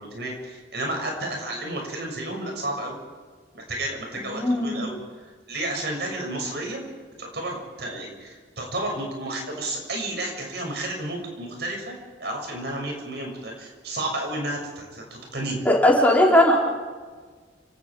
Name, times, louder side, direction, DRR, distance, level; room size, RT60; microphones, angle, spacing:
voice 1, 0.0-3.0 3.5-5.0 5.2-6.8 7.2-11.9 12.2-15.6, right 1 dB, 65° right, 1 dB, 6.7 m, -31 dB
voice 2, 4.2-4.8 15.6-16.6, left 1 dB, 10° left, -4 dB, 4.5 m, -18 dB
30.0 x 18.5 x 4.9 m, 1.5 s
head